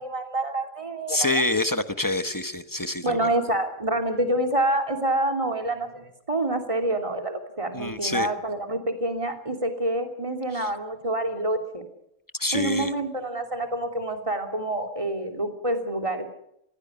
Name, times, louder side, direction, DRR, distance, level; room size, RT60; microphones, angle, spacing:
voice 1, 0.0-1.3 3.0-11.9 12.5-16.3, right 1 dB, 20° right, 5 dB, 2.9 m, -27 dB
voice 2, 1.1-3.3 7.7-8.3 10.5-10.7 12.4-12.9, left 2 dB, 15° left, 10 dB, 1.1 m, -26 dB
21.5 x 16.0 x 9.8 m, 0.78 s
omnidirectional pair, 1.5 m